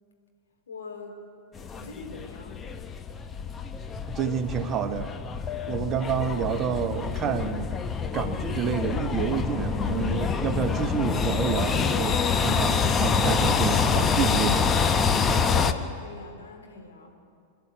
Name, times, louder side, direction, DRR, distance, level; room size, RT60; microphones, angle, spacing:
voice 1, 0.7-1.2 1.7-2.6 15.4-17.1, left 3 dB, 70° left, 2 dB, 3.8 m, -42 dB
sound 1, 1.6-15.7, left 5 dB, 20° left, 1.0 m, -26 dB
voice 2, 4.1-5.1 5.7-7.8 8.1-15.0, right 7 dB, 30° right, 8 dB, 1.3 m, -29 dB
27.5 x 11.5 x 8.3 m, 2.3 s
figure-of-eight pair, 90°, 0 cm